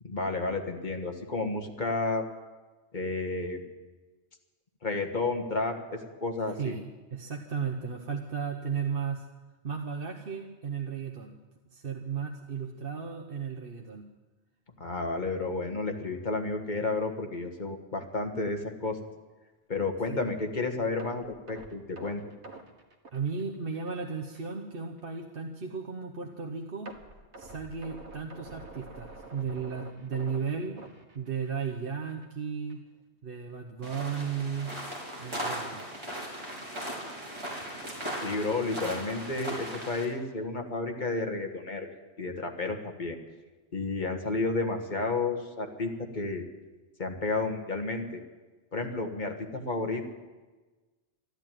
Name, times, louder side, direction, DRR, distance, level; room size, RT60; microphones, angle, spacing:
voice 1, 0.0-2.2 2.9-3.6 4.8-6.8 14.8-19.0 19.7-22.2 38.2-41.9 42.2-43.2 43.7-46.4 47.0-48.2 48.7-50.1, left 3 dB, 45° left, 4 dB, 1.7 m, -31 dB
voice 2, 7.1-9.3 9.6-11.3 11.7-14.0 20.1-20.3 23.1-26.9 27.4-30.8 31.1-32.8 33.2-34.7 35.2-35.9, right 6 dB, 55° right, 3 dB, 1.1 m, -35 dB
sound 1, 21.0-24.0 24.3-24.5 25.0-25.1 26.9-31.8 32.1-32.3 32.7-32.8, right 2 dB, 75° right, 1.8 m, -48 dB
sound 2, 33.8-40.0, equal, 25° right, 4.0 m, -38 dB
13.0 x 12.0 x 9.1 m, 1.3 s
omnidirectional pair, 1.2 m